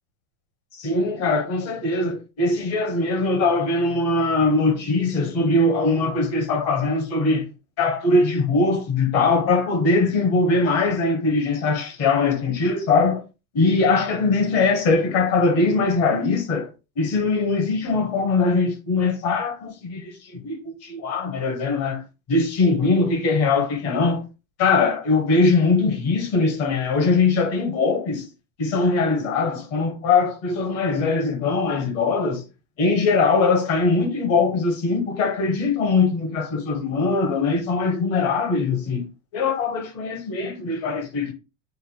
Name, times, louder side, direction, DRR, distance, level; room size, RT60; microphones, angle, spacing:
voice 1, 0.7-7.5 7.8-13.2 13.5-16.7 17.0-22.0 22.3-24.2 24.6-28.2 28.6-32.4 32.8-39.1 39.3-41.3, left 3 dB, 45° left, 1.1 m, -21 dB
5.3 x 2.1 x 2.2 m
cardioid pair, 150°, 35 cm